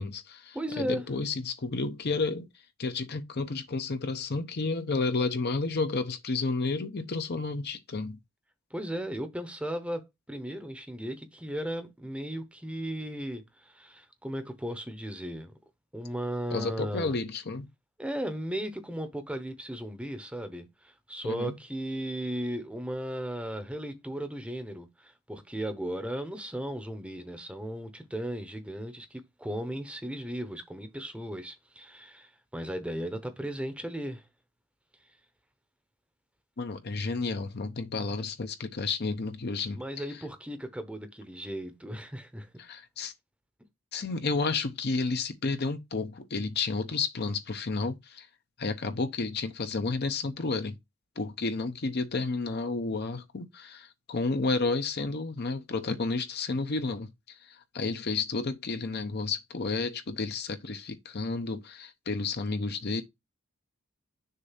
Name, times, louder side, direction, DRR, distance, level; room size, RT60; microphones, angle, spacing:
voice 1, 0.0-2.5 2.8-8.2 16.5-17.7 21.2-21.6 36.6-40.0 42.6-43.1 43.9-48.3 48.6-50.8 51.2-57.1 57.5-63.0, left 3 dB, 50° left, 0.7 m, -31 dB
voice 2, 0.5-1.1 8.7-15.5 15.9-17.2 18.0-34.2 39.7-42.5, equal, 5° right, 0.8 m, -36 dB
6.6 x 2.6 x 5.7 m
head